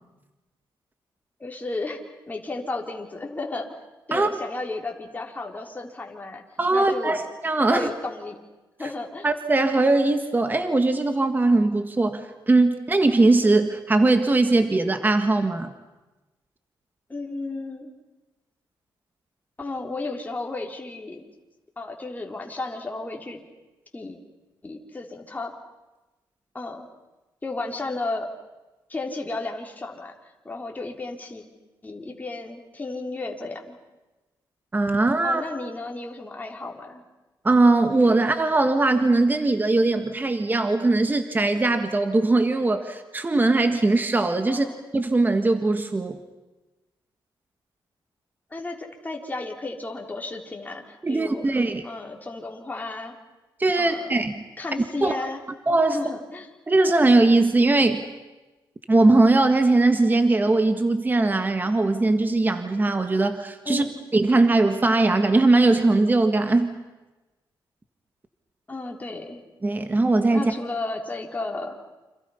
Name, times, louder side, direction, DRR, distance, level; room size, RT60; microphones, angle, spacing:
voice 1, 1.4-2.0 2.3-3.7 4.1-6.4 6.7-7.2 7.6-8.4 8.8-9.3 17.1-17.9 19.6-21.2 21.8-23.4 23.9-24.2 24.6-25.5 26.5-26.9 27.4-28.3 28.9-30.1 30.4-31.5 31.8-33.8 35.2-37.0 44.5-44.7 48.5-51.5 51.8-53.2 53.8-54.2 54.6-55.4 55.9-56.5 63.7-63.9 68.7-69.4 70.3-71.7, left 2 dB, 20° left, 1 dB, 3.6 m, -33 dB
voice 2, 6.6-7.9 9.2-15.7 34.7-35.4 37.4-44.7 44.9-46.2 51.0-51.8 53.6-54.4 55.0-55.2 55.7-56.0 56.7-58.0 58.9-63.8 64.1-66.7 69.6-70.5, right 2 dB, 20° right, 8 dB, 1.6 m, -20 dB
29.5 x 27.0 x 5.7 m, 1.1 s
cardioid pair, 105°, 9 cm